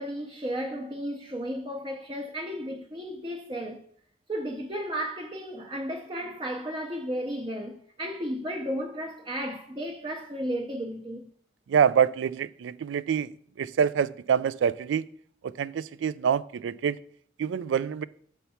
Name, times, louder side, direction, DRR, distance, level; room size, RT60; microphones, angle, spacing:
voice 1, 0.0-3.8 4.3-11.3, equal, 25° right, 0.6 m, -34 dB
voice 2, 11.7-13.3 13.6-15.0 15.4-17.0 17.4-18.0, right 7 dB, 85° right, 0.3 m, -26 dB
6.9 x 4.5 x 5.6 m
head